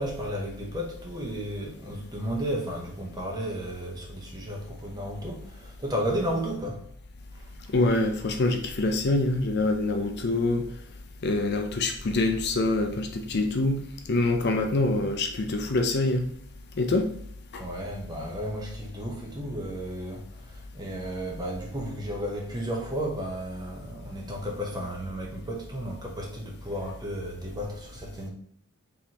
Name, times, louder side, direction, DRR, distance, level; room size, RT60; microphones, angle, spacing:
voice 1, 0.0-6.8 7.4-7.5 17.6-28.3, equal, 20° right, 0.9 m, -33 dB
voice 2, 7.7-10.6 11.2-13.8 14.1-16.3 16.8-17.1 17.5-17.6, left 2 dB, 50° left, 0.5 m, -25 dB
4.2 x 3.4 x 2.9 m
head